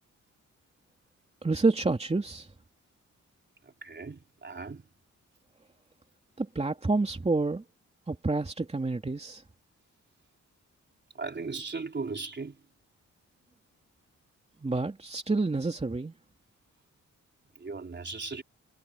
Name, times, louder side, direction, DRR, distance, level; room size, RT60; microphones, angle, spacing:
voice 1, 1.4-2.5 6.4-7.6 8.1-9.4 14.6-16.1, right 3 dB, 20° right, 3.0 m, -28 dB
voice 2, 3.8-4.9 11.1-12.6 17.6-18.4, right 4 dB, 40° right, 3.9 m, -37 dB
cardioid pair, 95°, 29 cm